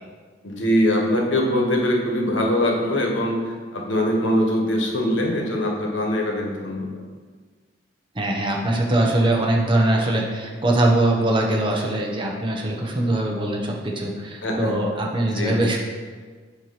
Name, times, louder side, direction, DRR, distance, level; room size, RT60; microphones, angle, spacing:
voice 1, 0.4-7.0 14.4-14.8 15.3-15.6, left 1 dB, 70° left, 1 dB, 1.1 m, -22 dB
voice 2, 8.1-15.8, right 1 dB, 25° right, -1 dB, 0.8 m, -22 dB
7.7 x 3.0 x 5.7 m, 1.5 s
head